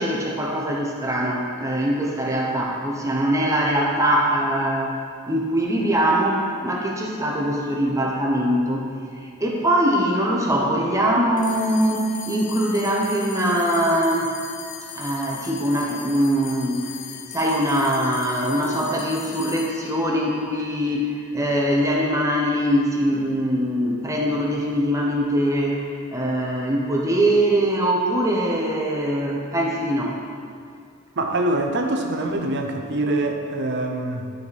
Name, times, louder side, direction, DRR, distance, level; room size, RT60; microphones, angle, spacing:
voice 1, 0.0-5.0 5.3-8.9 9.2-14.3 14.9-16.9 17.3-30.2, right 1 dB, 15° right, -2 dB, 1.0 m, -22 dB
sound 1, 11.4-22.0, left 7 dB, 40° left, 0.6 m, -39 dB
voice 2, 31.2-34.3, right 2 dB, 55° right, 3 dB, 0.7 m, -24 dB
11.5 x 5.2 x 4.2 m, 2.2 s
head